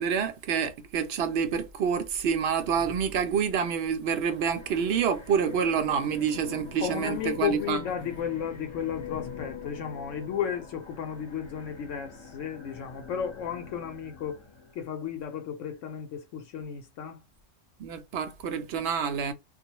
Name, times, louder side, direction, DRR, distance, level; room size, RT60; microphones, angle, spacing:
voice 1, 0.0-7.8 17.8-19.3, right 7 dB, 65° right, 0.8 m, -27 dB
sound 1, 4.3-14.8, left 6 dB, 25° left, 0.8 m, -44 dB
voice 2, 6.8-14.4 14.7-17.2, left 8 dB, 80° left, 0.9 m, -34 dB
2.4 x 2.1 x 2.8 m
omnidirectional pair, 1.3 m